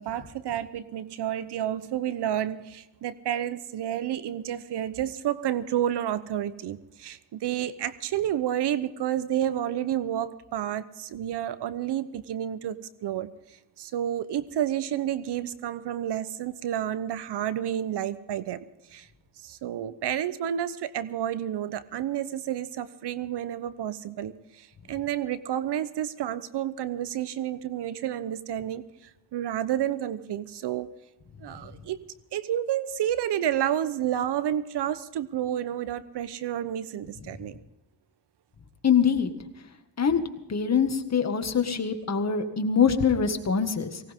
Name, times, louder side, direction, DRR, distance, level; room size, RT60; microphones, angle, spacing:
voice 1, 0.0-13.3 13.8-18.6 18.9-19.1 19.4-30.9 31.4-32.0 32.3-37.6, right 11 dB, 65° right, 15 dB, 0.9 m, -30 dB
voice 2, 38.8-39.3 40.0-40.2 40.5-44.0, left 6 dB, 35° left, 7 dB, 2.1 m, -24 dB
19.0 x 18.0 x 3.7 m, 0.98 s
cardioid pair, 70°, 44 cm